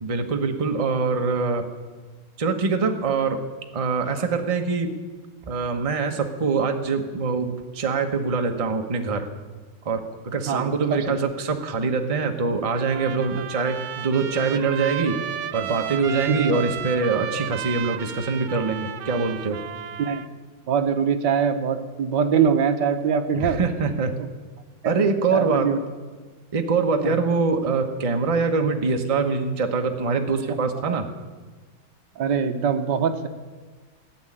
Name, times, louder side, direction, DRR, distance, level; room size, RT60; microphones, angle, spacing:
voice 1, 0.0-1.6 2.4-3.4 3.7-5.0 5.5-9.3 9.8-15.2 15.5-19.6 23.3-24.1 24.8-25.7 26.5-31.1, right 4 dB, 35° right, 4 dB, 0.6 m, -24 dB
voice 2, 10.5-11.2 13.3-13.4 16.3-16.5 20.0-20.2 20.7-23.6 24.2-24.3 24.8-24.9 25.3-25.8 27.0-27.2 30.8-31.0 32.2-33.3, right 7 dB, 60° right, 7 dB, 1.5 m, -23 dB
Trumpet, 12.7-20.3, right 9 dB, 75° right, 0.8 m, -33 dB
16.0 x 7.1 x 9.9 m, 1.4 s
omnidirectional pair, 2.4 m